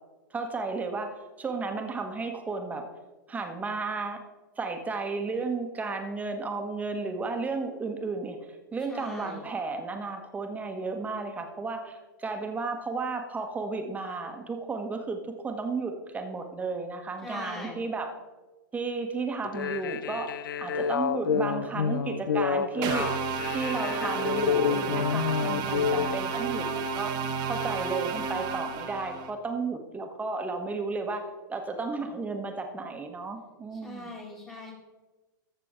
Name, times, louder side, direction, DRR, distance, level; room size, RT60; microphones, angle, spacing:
voice 1, 0.3-2.8 3.3-4.2 4.6-18.1 18.7-23.1 23.5-27.1 27.4-34.1, right 4 dB, 15° right, 5 dB, 1.3 m, -33 dB
voice 2, 8.9-9.4 17.2-17.9 33.7-34.7, left 2 dB, 20° left, -5 dB, 2.1 m, -41 dB
sound 1, 19.4-26.1, left 7 dB, 80° left, 0.5 m, -28 dB
sound 2, 22.8-29.3, right 6 dB, 40° right, 1.1 m, -31 dB
14.0 x 6.6 x 3.7 m, 1.2 s
hypercardioid pair, 115°, 11 cm